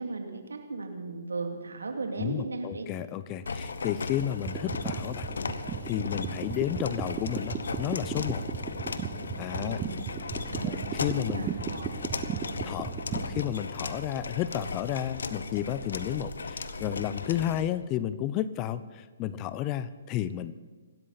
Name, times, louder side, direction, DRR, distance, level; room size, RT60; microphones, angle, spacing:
voice 1, 0.0-2.9 9.6-10.0 10.5-11.9, right 3 dB, 80° right, 4 dB, 2.8 m, -37 dB
voice 2, 2.2-5.3 5.8-8.4 9.4-9.8 10.6-11.5 12.6-20.5, left 11 dB, 30° left, 15 dB, 0.8 m, -32 dB
sound 1, 3.4-17.7, left 4 dB, 75° left, 1.1 m, -36 dB
sound 2, 4.4-13.5, right 9 dB, 20° right, 0.9 m, -36 dB
sound 3, 9.8-17.3, right 2 dB, 45° right, 7.1 m, -49 dB
27.0 x 12.5 x 4.2 m, 1.3 s
hypercardioid pair, 135°, 0 cm